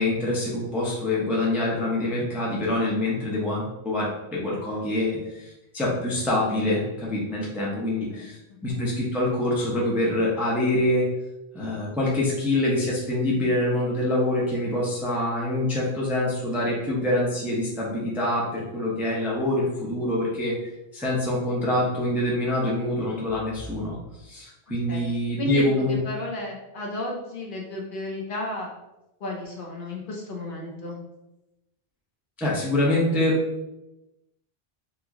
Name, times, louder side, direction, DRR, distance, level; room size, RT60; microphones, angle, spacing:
voice 1, 0.0-5.5 5.7-8.4 8.6-11.1 11.5-20.5 20.9-24.0 24.2-25.9 32.4-33.4, left 1 dB, ahead, -5 dB, 0.5 m, -25 dB
voice 2, 8.1-8.6 24.9-25.0 25.4-28.7 29.2-31.0, left 1 dB, 60° left, -1 dB, 0.8 m, -33 dB
3.0 x 2.0 x 3.5 m, 0.96 s
omnidirectional pair, 1.0 m